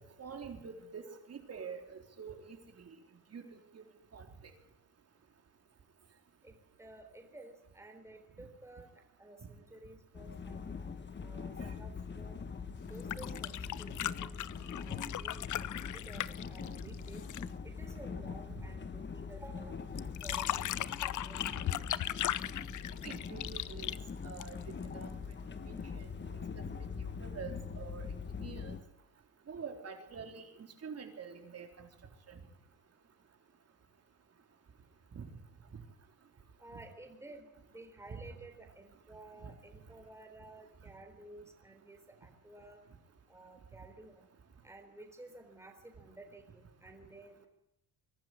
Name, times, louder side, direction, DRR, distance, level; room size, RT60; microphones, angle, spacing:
voice 1, 0.2-3.0 3.3-3.5 3.7-3.8 4.1-4.3 16.9-17.0 23.0-23.9 24.2-24.6 24.9-25.1 25.6-26.1 26.6-26.7 27.0-28.1 28.4-28.8 29.5-30.5 30.8-31.9 32.3-32.4 35.2-35.3 39.4-39.5, right 6 dB, 45° right, 5 dB, 4.0 m, -46 dB
voice 2, 6.4-8.9 9.2-12.4 12.9-14.4 14.7-15.5 15.8-17.2 17.6-19.8 20.2-21.9 36.6-42.8 43.3-44.2 44.6-47.5, right 2 dB, 10° right, 3 dB, 3.8 m, -53 dB
sound 1, 10.1-28.8, left 5 dB, 30° left, 1.7 m, -43 dB
Water pooring, 12.9-17.6 20.0-24.9 26.3-26.4, left 13 dB, 55° left, 0.8 m, -38 dB
22.5 x 12.5 x 9.9 m, 0.85 s
cardioid pair, 95°, 36 cm